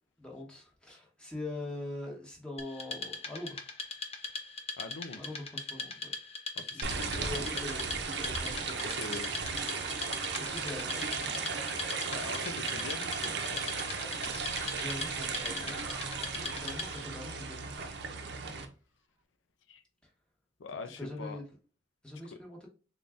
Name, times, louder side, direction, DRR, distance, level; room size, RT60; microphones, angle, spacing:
voice 1, 0.2-3.7 5.1-6.1 6.6-8.8 10.4-11.7 14.8-15.8 16.3-17.8 21.0-21.4 22.0-22.7, left 2 dB, 5° left, 1.0 m, -43 dB
Wood, 2.6-17.1, left 3 dB, 30° left, 0.6 m, -40 dB
voice 2, 4.8-5.4 6.6-7.4 8.8-9.3 12.1-13.6 19.7-19.8 20.6-21.4 22.3-22.4, left 3 dB, 85° left, 0.5 m, -43 dB
sound 1, 6.8-18.6, right 5 dB, 60° right, 0.6 m, -36 dB
sound 2, 14.2-18.2, right 2 dB, 15° right, 0.5 m, -50 dB
3.9 x 2.4 x 3.4 m
head